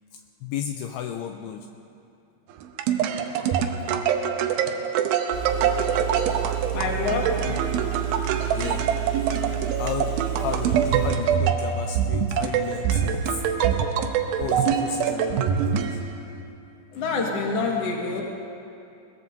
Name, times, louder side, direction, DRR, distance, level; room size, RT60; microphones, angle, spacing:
voice 1, 0.4-1.7 7.4-7.6 8.6-8.9 9.2-9.3 9.7-13.4 13.8-13.9 14.4-16.0, left 8 dB, 90° left, 5 dB, 2.3 m, -33 dB
sound 1, 2.5-16.4, right 8 dB, 90° right, 2.1 m, -25 dB
Engine, 5.3-11.1, right 10 dB, 25° right, 2.7 m, -30 dB
voice 2, 6.7-7.3 16.9-18.2, left 4 dB, 55° left, -1 dB, 1.7 m, -26 dB
21.5 x 19.0 x 2.7 m, 2.6 s
omnidirectional pair, 5.2 m